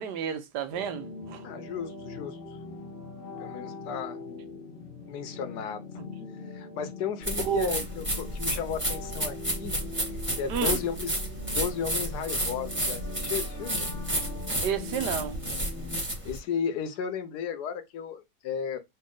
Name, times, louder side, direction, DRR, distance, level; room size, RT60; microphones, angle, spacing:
voice 1, 0.0-1.4 7.4-7.8 10.5-10.8 14.6-15.4, right 8 dB, 75° right, 1.4 m, -31 dB
sound 1, 0.7-16.0, left 3 dB, 50° left, 0.6 m, -42 dB
voice 2, 1.4-2.6 3.4-4.2 5.1-5.9 6.5-9.8 10.3-11.2 11.5-13.9 16.2-18.8, left 7 dB, 75° left, 1.4 m, -34 dB
sound 2, 7.2-16.4, right 1 dB, 5° right, 1.5 m, -31 dB
4.3 x 2.7 x 3.7 m
omnidirectional pair, 1.8 m